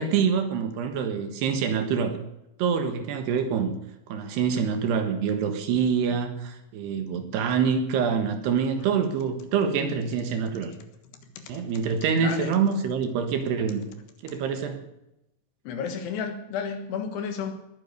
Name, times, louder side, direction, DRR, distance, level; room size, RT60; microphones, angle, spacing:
voice 1, 0.0-2.2 2.6-3.7 4.1-10.7 11.5-13.8 14.2-14.9, right 6 dB, 70° right, 7 dB, 3.4 m, -26 dB
voice 2, 11.2-11.7 12.2-12.6 14.3-14.4 15.6-17.7, left 6 dB, 70° left, 7 dB, 3.3 m, -33 dB
20.5 x 9.6 x 6.7 m, 0.88 s
omnidirectional pair, 5.3 m